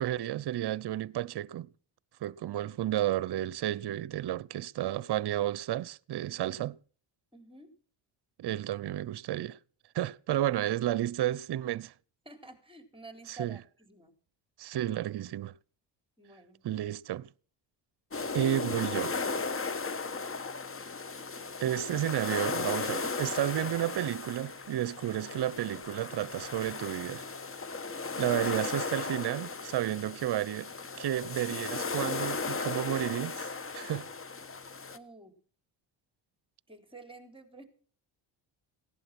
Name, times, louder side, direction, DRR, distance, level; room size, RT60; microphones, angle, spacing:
voice 1, 0.0-1.7 2.2-6.8 8.4-9.6 9.9-11.9 13.3-13.6 14.6-15.5 16.6-17.3 18.3-19.2 21.6-27.3 28.2-30.7 31.0-34.1, right 12 dB, 55° right, 0.8 m, -32 dB
voice 2, 7.3-7.8 12.2-14.1 16.2-16.7 34.9-35.4 36.7-37.6, right 3 dB, 10° right, 4.2 m, -50 dB
sound 1, 18.1-35.0, left 4 dB, 25° left, 1.3 m, -36 dB
17.5 x 11.5 x 6.1 m
supercardioid pair, 75°, 49 cm